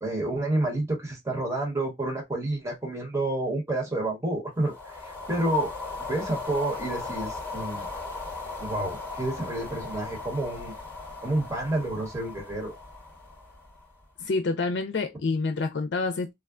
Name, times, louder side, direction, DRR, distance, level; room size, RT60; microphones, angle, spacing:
voice 1, 0.0-5.7 6.1-7.9 8.6-10.7 11.2-12.7, right 1 dB, 15° right, 1.1 m, -29 dB
sound 1, 4.6-14.0, left 3 dB, 10° left, 1.0 m, -38 dB
voice 2, 14.2-16.3, left 3 dB, 65° left, 0.4 m, -27 dB
3.5 x 2.2 x 2.3 m
head